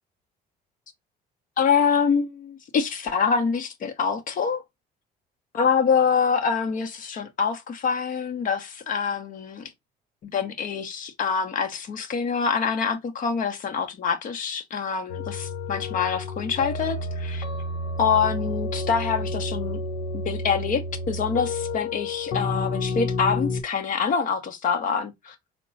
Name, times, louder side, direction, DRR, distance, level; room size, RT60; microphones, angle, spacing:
voice 1, 1.6-4.6 5.5-9.7 10.2-17.4 18.0-19.8 20.1-25.3, left 6 dB, 50° left, 1.0 m, -25 dB
sound 1, 15.1-23.6, left 2 dB, 90° left, 0.9 m, -30 dB
4.4 x 2.2 x 3.9 m
cardioid pair, 110°, 17 cm